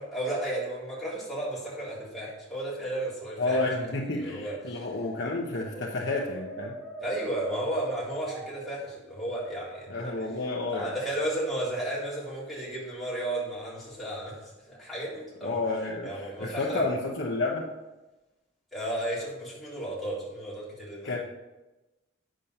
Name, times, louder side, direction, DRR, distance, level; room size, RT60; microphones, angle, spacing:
voice 1, 0.0-3.6 4.2-4.9 7.0-10.1 10.7-15.6 16.0-16.8 18.7-21.2, right 1 dB, ahead, -8 dB, 3.6 m, -33 dB
voice 2, 3.4-6.7 9.9-10.9 15.4-17.7 21.0-21.2, left 3 dB, 65° left, -2 dB, 1.1 m, -30 dB
Brass instrument, 5.7-8.5 10.0-10.6, right 2 dB, 15° right, 2.3 m, -43 dB
8.9 x 6.4 x 5.5 m, 1.1 s
head